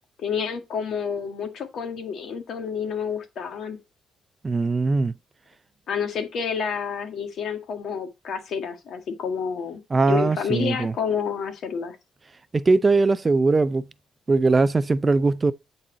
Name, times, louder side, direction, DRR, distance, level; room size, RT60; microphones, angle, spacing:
voice 1, 0.2-3.8 5.9-9.8 10.1-12.0, left 6 dB, 65° left, 1.7 m, -29 dB
voice 2, 4.4-5.1 9.9-10.9 12.5-13.9 14.3-15.5, right 3 dB, 30° right, 0.4 m, -20 dB
8.8 x 4.1 x 3.9 m
cardioid pair, 90°, 0 cm